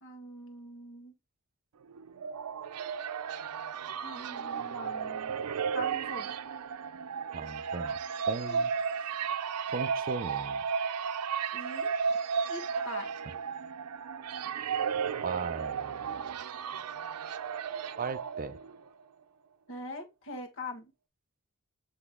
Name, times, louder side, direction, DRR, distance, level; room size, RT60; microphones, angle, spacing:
voice 1, 0.0-1.1 4.0-5.5 5.7-6.3 8.4-8.6 11.5-11.9 12.5-13.1 19.7-20.9, left 1 dB, 60° left, 1.6 m, -43 dB
sound 1, 1.9-18.9, right 6 dB, 90° right, 0.5 m, -34 dB
voice 2, 7.3-8.0 8.3-9.1 9.7-10.6 15.2-16.3 18.0-18.6, right 4 dB, 40° right, 0.5 m, -38 dB
8.0 x 3.3 x 3.6 m
head